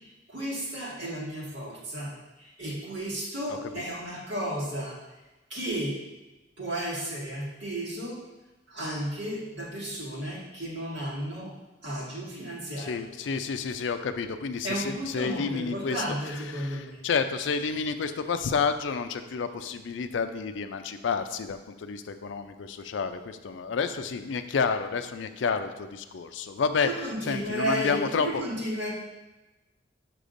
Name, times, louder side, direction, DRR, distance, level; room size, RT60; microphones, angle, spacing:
voice 1, 0.0-5.0 5.5-6.0 6.6-8.2 8.7-11.5 11.8-13.0 14.6-17.0 26.8-28.9, right 1 dB, 80° right, -5 dB, 1.9 m, -33 dB
voice 2, 3.5-3.8 12.8-16.0 16.5-26.9 27.3-28.3, left 5 dB, 80° left, 9 dB, 0.4 m, -30 dB
6.6 x 6.0 x 2.5 m, 1.1 s
head